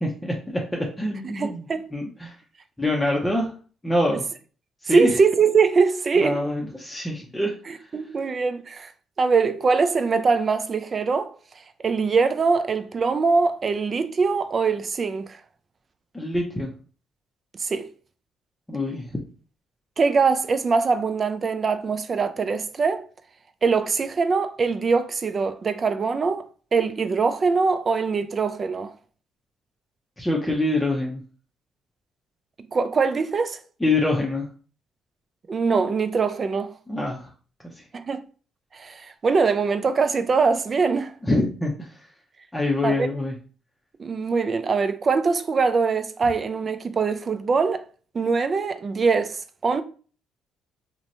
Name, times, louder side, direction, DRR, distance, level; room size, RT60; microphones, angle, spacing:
voice 1, 0.0-1.6 1.9-2.3 2.8-3.5 3.8-4.2 4.8-5.2 6.2-7.5 16.1-16.7 18.7-19.1 30.2-31.2 33.8-34.5 36.9-37.3 41.2-41.9 42.5-43.3, left 1 dB, 10° left, 0.6 m, -25 dB
voice 2, 1.3-1.9 4.9-6.4 7.9-8.9 9.2-11.3 11.8-15.4 17.6-17.9 20.0-23.1 23.6-26.5 26.7-28.9 32.7-33.6 35.5-36.7 37.9-38.2 38.7-41.1 42.8-43.1 44.0-47.8 48.1-49.8, right 4 dB, 40° right, 0.3 m, -22 dB
2.9 x 2.1 x 2.7 m
supercardioid pair, 70°, 0 cm